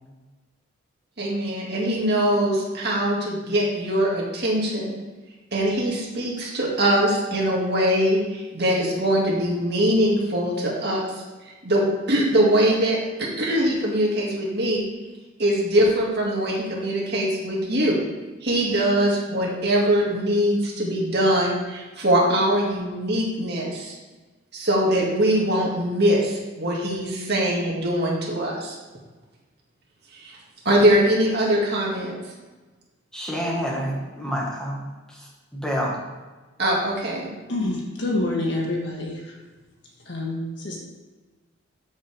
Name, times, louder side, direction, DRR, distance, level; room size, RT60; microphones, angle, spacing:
voice 1, 1.2-4.9 5.5-11.1 11.6-14.8 15.4-18.0 18.4-24.0 24.5-28.7 30.1-30.4 30.6-32.1 36.6-37.3, equal, 50° right, -3 dB, 2.3 m, -22 dB
voice 2, 33.1-34.8 35.1-36.0, equal, 5° left, -4 dB, 1.7 m, -28 dB
voice 3, 37.5-39.3 40.1-40.8, left 2 dB, 55° left, -1 dB, 1.9 m, -27 dB
13.5 x 5.3 x 3.6 m, 1.3 s
head